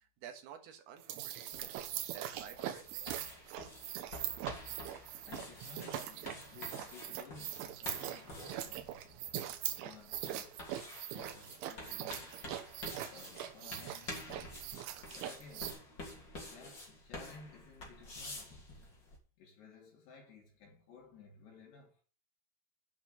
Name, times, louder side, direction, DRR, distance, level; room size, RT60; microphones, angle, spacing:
voice 1, 0.0-3.1, right 9 dB, 65° right, 3.1 m, -53 dB
sound 1, 1.0-15.7, right 12 dB, 85° right, 3.5 m, -42 dB
sound 2, 1.5-19.2, left 2 dB, 30° left, 2.9 m, -49 dB
voice 2, 5.1-9.2 9.7-10.7 11.1-12.4 13.1-14.2 15.1-15.9 16.3-18.9 19.4-22.0, left 4 dB, 65° left, 4.8 m, -56 dB
11.0 x 5.7 x 6.7 m
omnidirectional pair, 5.5 m